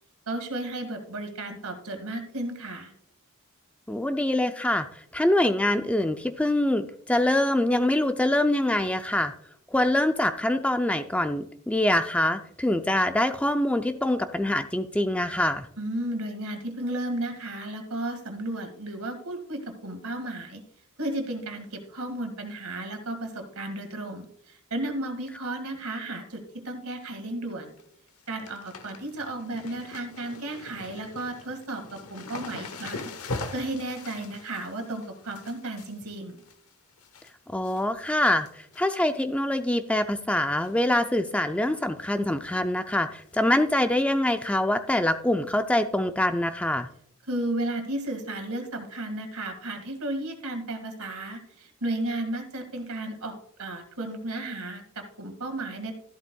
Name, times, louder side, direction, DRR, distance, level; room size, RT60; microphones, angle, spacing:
voice 1, 0.3-2.9 15.8-20.6 21.0-27.7 28.3-33.1 33.5-36.4 47.3-55.9, right 1 dB, 80° right, 6 dB, 2.0 m, -34 dB
voice 2, 3.9-9.3 9.7-15.7 37.5-46.9, left 1 dB, 5° left, 8 dB, 0.3 m, -24 dB
sound 1, 27.5-27.8 28.1-37.3 37.6-38.1 38.4-39.2 39.6-39.7 40.6-40.9 41.1-41.2 41.6-41.7 43.3-43.4 44.2-44.3, left 3 dB, 85° left, 1.0 m, -41 dB
13.5 x 12.0 x 2.3 m, 0.66 s
head